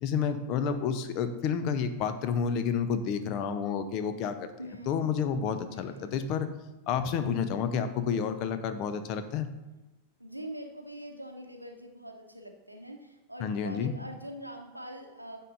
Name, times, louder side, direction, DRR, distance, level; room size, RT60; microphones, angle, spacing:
voice 1, 0.0-4.5 4.9-6.5 6.9-9.5 13.4-13.9, left 7 dB, 40° left, 10 dB, 0.6 m, -30 dB
voice 2, 4.6-5.2 5.7-6.2 10.2-15.4, equal, 90° right, 4 dB, 0.8 m, -44 dB
9.1 x 3.8 x 4.0 m, 1.0 s
figure-of-eight pair, 90°, 0 cm